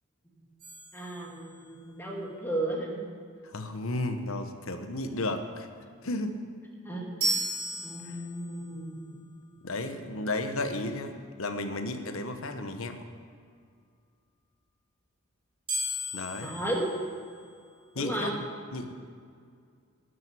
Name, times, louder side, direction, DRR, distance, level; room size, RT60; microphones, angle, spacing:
sound 1, 0.6-1.9 7.2-8.7 15.7-17.8, right 1 dB, 25° right, 4.6 m, -35 dB
voice 1, 0.9-3.0 6.8-7.3 7.8-9.2 16.4-16.8 18.0-18.4, right 1 dB, 10° left, -2 dB, 2.2 m, -34 dB
voice 2, 3.4-5.7 6.0-6.4 8.0-8.2 9.6-11.1 11.4-13.0 16.1-16.5 17.9-18.4 18.7-18.9, left 2 dB, 70° left, 7 dB, 1.1 m, -33 dB
12.5 x 7.7 x 9.7 m, 2.2 s
head